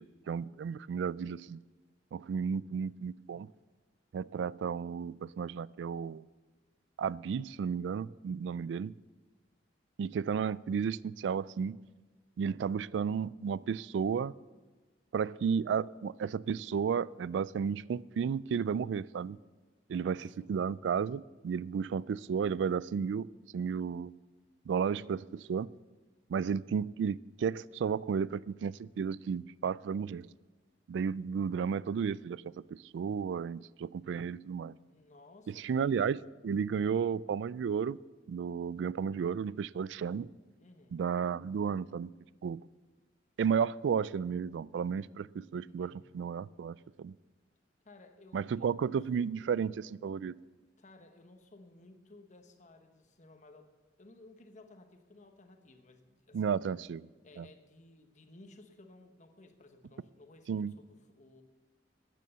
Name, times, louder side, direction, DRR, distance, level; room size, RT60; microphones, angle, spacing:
voice 1, 0.0-1.6 2.1-3.5 4.1-6.3 7.0-8.9 10.0-11.8 12.4-14.3 15.1-19.4 19.9-24.1 24.7-25.7 26.3-30.3 30.9-32.4 32.7-34.7 35.6-38.0 38.3-40.3 40.9-42.1 42.4-42.6 43.4-47.1 48.3-50.3 56.3-57.0 57.4-57.5 60.5-60.7, right 6 dB, 75° right, 21 dB, 0.3 m, -33 dB
voice 2, 20.0-20.6 34.9-36.1 36.8-37.1 40.6-41.1 45.6-46.0 47.8-48.9 49.4-49.8 50.8-53.7 54.0-56.6 57.2-61.4, left 2 dB, 40° left, 7 dB, 1.2 m, -57 dB
12.0 x 9.4 x 6.8 m, 1.3 s
head